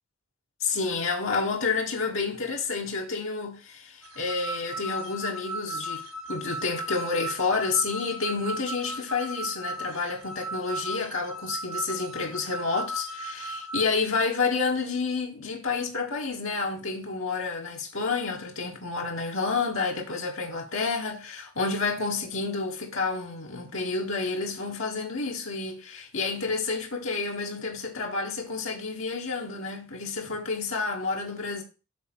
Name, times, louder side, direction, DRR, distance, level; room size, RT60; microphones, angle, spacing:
voice 1, 0.6-31.6, left 4 dB, 65° left, 1.5 m, -29 dB
sound 1, 4.0-13.8, right 1 dB, 80° right, 1.2 m, -36 dB
8.3 x 3.5 x 6.2 m
head